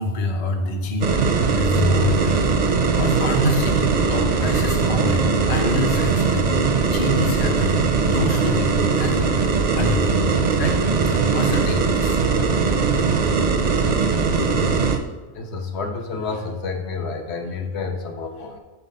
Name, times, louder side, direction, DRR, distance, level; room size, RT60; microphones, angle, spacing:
voice 1, 0.0-2.4 2.7-10.8 11.1-12.2, left 2 dB, 40° left, 4 dB, 0.7 m, -26 dB
sound 1, 1.0-15.0, right 4 dB, 50° right, 0.5 m, -20 dB
voice 2, 15.3-18.6, left 4 dB, 70° left, 4 dB, 1.0 m, -29 dB
5.8 x 4.0 x 5.3 m, 1.1 s
omnidirectional pair, 1.2 m